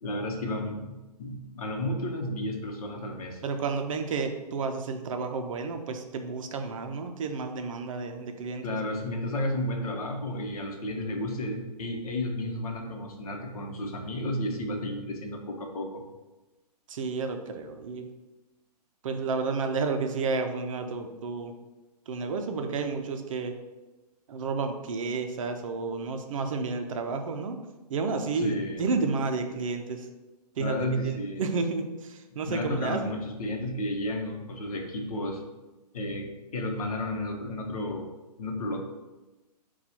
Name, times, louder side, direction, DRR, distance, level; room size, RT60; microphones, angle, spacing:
voice 1, 0.0-3.4 8.6-16.0 28.4-28.8 30.6-31.4 32.5-35.4 35.9-38.1 38.4-38.8, left 1 dB, 60° left, 2 dB, 0.9 m, -32 dB
voice 2, 3.4-8.8 16.9-18.1 19.0-21.5 22.1-23.6 24.3-27.6 27.9-30.1 30.6-33.1, right 4 dB, 50° right, 5 dB, 0.5 m, -31 dB
4.2 x 2.3 x 4.2 m, 1.1 s
hypercardioid pair, 145°, 21 cm